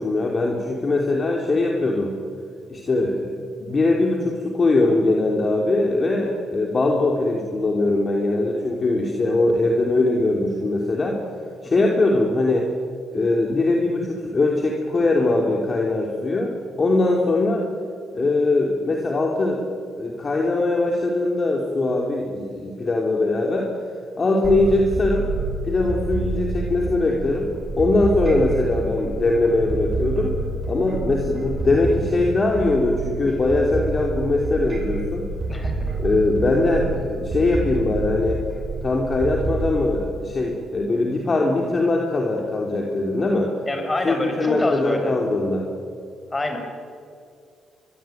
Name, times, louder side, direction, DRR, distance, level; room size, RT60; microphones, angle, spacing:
voice 1, 0.0-2.2 2.7-11.2 11.6-12.7 13.1-17.7 18.1-19.6 20.0-23.7 24.2-25.3 25.6-27.5 27.8-30.4 30.7-35.3 36.0-38.4 38.8-43.5 44.0-45.7, left 2 dB, 35° left, 0 dB, 3.4 m, -21 dB
sound 1, 24.4-39.7, right 3 dB, 35° right, 5.8 m, -28 dB
voice 2, 35.5-35.8 43.7-45.1 46.3-46.6, left 2 dB, 20° left, 5 dB, 6.0 m, -26 dB
23.5 x 22.5 x 9.3 m, 2.3 s
cardioid pair, 90°, 0 cm